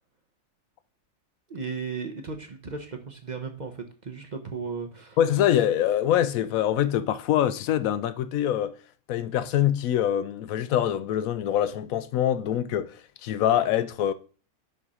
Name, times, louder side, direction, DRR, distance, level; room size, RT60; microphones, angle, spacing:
voice 1, 1.5-5.2, right 5 dB, 40° right, 0.8 m, -35 dB
voice 2, 5.2-8.8 9.1-14.1, left 11 dB, 80° left, 1.0 m, -24 dB
5.6 x 5.4 x 4.9 m
omnidirectional pair, 1.4 m